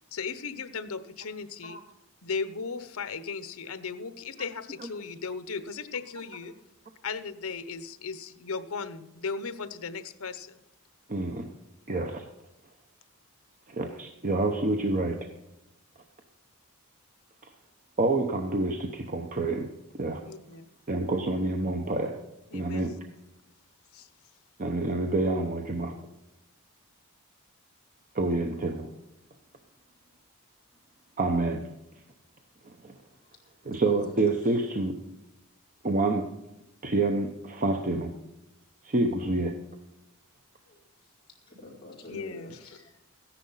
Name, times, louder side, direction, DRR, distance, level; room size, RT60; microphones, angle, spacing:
voice 1, 0.1-1.8 2.2-6.5 7.0-10.6 20.2-20.7 22.5-22.9 23.9-24.1 34.0-34.1 42.1-42.6, left 5 dB, 65° left, 13 dB, 0.9 m, -36 dB
voice 2, 11.1-11.5 11.9-12.2 13.7-15.2 18.0-19.7 20.0-20.2 20.9-22.2 22.5-22.9 24.6-26.0 28.1-28.9 31.2-31.6 32.6-32.9 33.6-35.0 35.8-36.3 36.8-38.1 38.8-39.5, right 2 dB, 35° right, 4 dB, 0.9 m, -27 dB
voice 3, 33.7-34.2 40.7-40.8 41.5-43.0, left 1 dB, 20° left, -3 dB, 3.9 m, -46 dB
14.5 x 10.5 x 5.6 m, 0.92 s
head